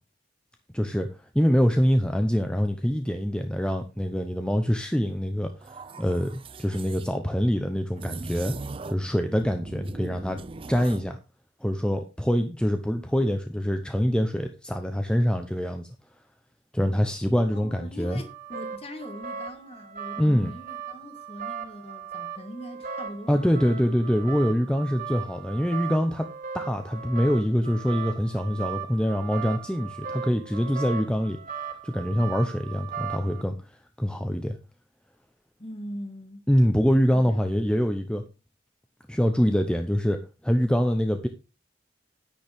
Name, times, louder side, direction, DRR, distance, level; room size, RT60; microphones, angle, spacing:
voice 1, 0.7-1.1 1.3-8.5 8.9-10.4 10.7-11.2 11.6-15.9 16.7-18.2 20.2-20.5 23.3-26.3 26.5-31.4 31.8-33.5 34.0-34.6 36.5-38.2 39.1-41.3, equal, 5° left, 0.7 m, -25 dB
sound 1, 5.6-7.1 8.0-9.1 9.4-11.1, right 3 dB, 30° right, 0.4 m, -40 dB
voice 2, 17.5-23.5 35.6-36.4 37.1-37.5, equal, 30° left, 2.0 m, -41 dB
sound 2, 18.1-33.4, right 7 dB, 45° right, 2.8 m, -38 dB
10.0 x 9.4 x 3.6 m
head